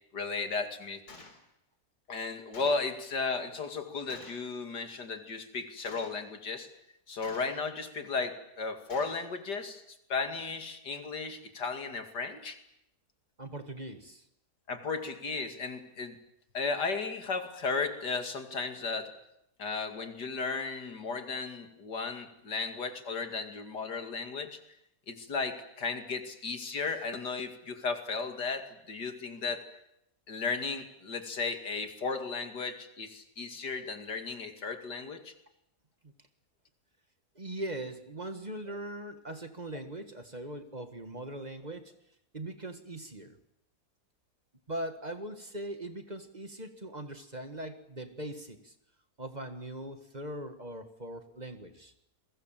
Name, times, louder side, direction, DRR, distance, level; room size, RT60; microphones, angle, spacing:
voice 1, 0.1-1.0 2.1-6.7 7.1-12.6 14.7-16.2 16.5-19.1 19.6-24.6 25.1-29.6 30.3-35.3, left 4 dB, 90° left, 7 dB, 3.1 m, -35 dB
Gunshot gunfire, 1.1-1.4 2.5-2.9 4.1-4.5 5.8-6.3 7.2-7.7 8.9-9.3, left 2 dB, 70° left, 4.3 m, -50 dB
voice 2, 13.4-14.3 36.0-36.1 37.4-42.0 42.3-43.4 44.7-48.7 49.2-51.9, right 1 dB, 25° right, 8 dB, 1.9 m, -40 dB
29.5 x 22.0 x 7.6 m, 0.81 s
omnidirectional pair, 1.7 m